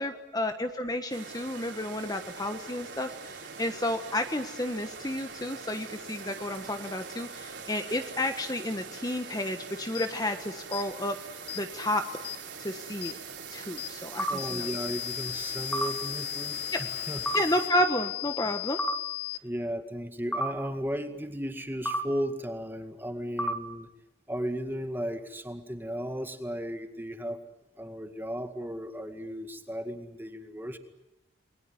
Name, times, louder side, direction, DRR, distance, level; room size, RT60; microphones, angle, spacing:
voice 1, 0.0-11.2 11.6-12.0 12.6-13.2 13.5-14.7 17.3-18.8, left 1 dB, 20° left, 7 dB, 1.3 m, -31 dB
sound 1, 1.1-17.7, right 6 dB, 65° right, 5.5 m, -43 dB
sound 2, 9.9-10.1 10.7-10.9 11.5-11.6 12.2-12.4 13.0-13.2 13.8-13.9 14.4-19.4, left 17 dB, 55° left, 1.0 m, -36 dB
sound 3, 14.2-14.4 15.7-15.9 17.3-17.5 18.8-19.0 20.3-20.5 21.9-22.0 23.4-23.6, right 1 dB, 5° left, 1.5 m, -29 dB
voice 2, 14.3-17.2 19.4-23.9 24.3-27.4 27.8-30.8, equal, 10° right, 7 dB, 2.0 m, -35 dB
29.0 x 21.5 x 9.4 m, 0.89 s
head